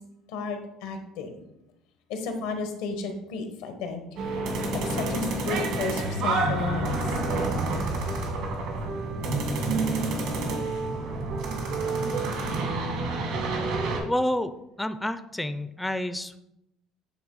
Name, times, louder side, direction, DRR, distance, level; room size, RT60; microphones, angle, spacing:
voice 1, 0.3-1.4 2.1-4.0 4.7-7.2, left 4 dB, 85° left, 6 dB, 1.1 m, -33 dB
sound 1, 4.2-14.0, right 2 dB, 75° right, 1.7 m, -28 dB
voice 2, 14.1-14.5 14.8-16.4, left 1 dB, 5° left, 10 dB, 0.3 m, -29 dB
8.7 x 3.1 x 3.9 m, 0.84 s
cardioid pair, 110°, 0 cm